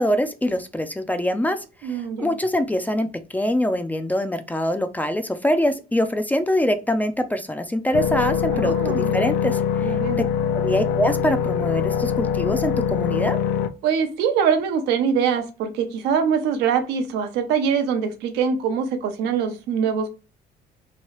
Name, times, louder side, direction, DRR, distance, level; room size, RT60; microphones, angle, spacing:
voice 1, 0.0-9.9 10.5-13.4, left 1 dB, 10° left, 9 dB, 0.3 m, -24 dB
voice 2, 1.8-2.3 8.5-9.2 9.8-10.2 13.8-20.1, right 7 dB, 85° right, 8 dB, 0.7 m, -23 dB
sound 1, 7.9-13.7, left 8 dB, 75° left, 0.4 m, -23 dB
3.0 x 2.7 x 2.9 m, 0.32 s
cardioid pair, 110°, 17 cm